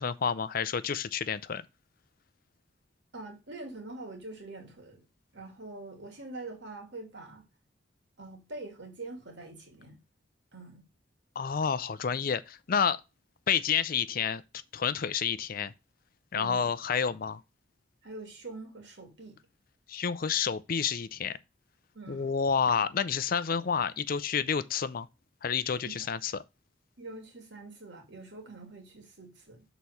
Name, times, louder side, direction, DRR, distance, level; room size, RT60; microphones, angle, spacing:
voice 1, 0.0-1.7 11.4-13.0 13.5-14.4 14.7-15.7 16.3-17.4 19.9-21.4 22.1-25.1 25.4-26.4, left 6 dB, 45° left, 0.5 m, -29 dB
voice 2, 3.1-5.0 5.3-7.5 8.2-10.0 10.5-10.9 16.3-16.7 18.0-19.4 21.9-22.3 25.8-25.9 27.0-29.6, right 2 dB, 60° right, 2.4 m, -44 dB
6.6 x 4.1 x 5.7 m
head